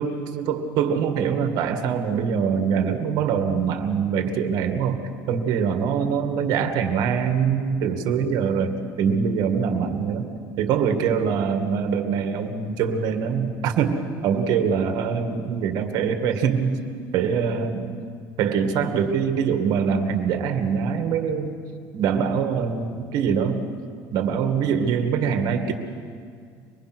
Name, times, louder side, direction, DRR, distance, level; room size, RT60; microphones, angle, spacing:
voice 1, 0.0-5.0 5.3-10.3 10.6-16.8 17.1-17.9 18.4-21.5 21.9-23.6 24.1-25.7, right 6 dB, 65° right, 6 dB, 2.1 m, -23 dB
24.5 x 20.0 x 6.2 m, 2.2 s
cardioid pair, 130°, 7 cm